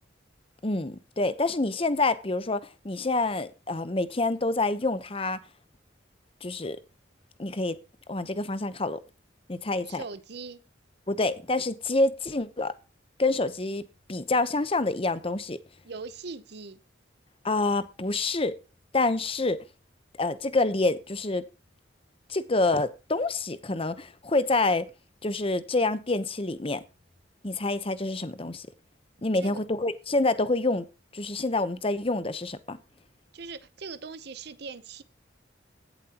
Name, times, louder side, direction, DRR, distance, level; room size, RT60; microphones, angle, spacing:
voice 1, 0.6-5.4 6.4-6.8 7.4-7.8 8.1-9.0 9.5-10.0 11.1-12.7 13.2-13.8 14.1-15.6 17.4-18.5 18.9-19.6 20.2-21.4 22.3-24.9 25.2-26.8 27.4-28.7 29.2-30.9 31.1-32.8, left 2 dB, 30° left, 0.9 m, -27 dB
voice 2, 9.9-10.6 15.8-16.8 29.4-29.6 33.3-35.0, right 4 dB, 60° right, 0.8 m, -40 dB
16.5 x 7.5 x 2.9 m
head